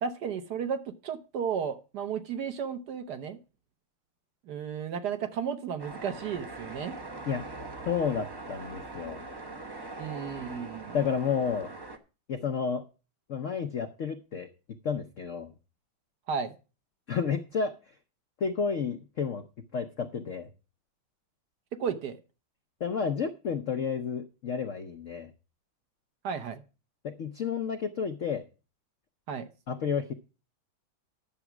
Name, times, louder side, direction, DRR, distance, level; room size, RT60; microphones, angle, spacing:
voice 1, 0.0-3.4 4.5-7.0 10.0-10.9 16.3-16.5 21.7-22.2 26.2-26.6 29.3-29.5, right 7 dB, 60° right, 9 dB, 1.3 m, -33 dB
sound 1, 5.8-12.0, right 2 dB, 30° right, 0.4 m, -42 dB
voice 2, 7.8-9.2 10.9-11.7 12.3-12.8 13.3-14.5 14.8-15.5 17.1-17.9 18.4-19.4 19.7-20.5 22.8-25.3 27.0-28.4 29.7-30.1, left 6 dB, 65° left, 7 dB, 0.7 m, -31 dB
10.0 x 7.1 x 5.9 m, 0.33 s
omnidirectional pair, 2.2 m